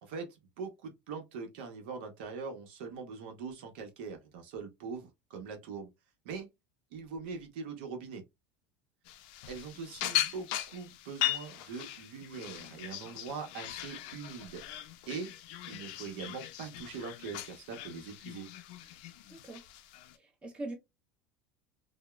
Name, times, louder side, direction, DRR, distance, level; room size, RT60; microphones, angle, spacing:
voice 1, 0.0-5.9 6.2-6.5 6.9-8.2 9.5-14.6 15.1-15.3 15.7-18.5, right 5 dB, 80° right, 0.7 m, -42 dB
sound 1, 9.1-20.2, left 13 dB, 70° left, 0.4 m, -39 dB
voice 2, 19.3-19.6 20.1-20.8, right 2 dB, 20° right, 0.8 m, -42 dB
2.8 x 2.0 x 2.2 m
supercardioid pair, 130°, 5 cm